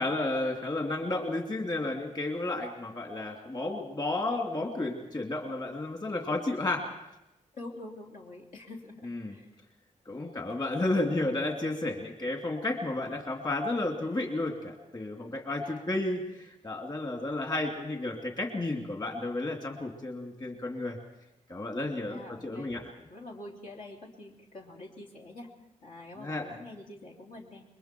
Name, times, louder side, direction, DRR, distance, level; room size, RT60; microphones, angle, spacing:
voice 1, 0.0-6.9 9.0-9.4 10.1-21.0 21.5-22.8 26.2-26.6, left 2 dB, 30° left, 2 dB, 2.6 m, -32 dB
voice 2, 7.5-9.5 10.1-10.4 15.6-15.9 22.1-25.5 25.8-27.6, left 2 dB, 85° left, 0 dB, 3.3 m, -46 dB
28.0 x 22.5 x 4.6 m, 0.91 s
wide cardioid pair, 155°, 13 cm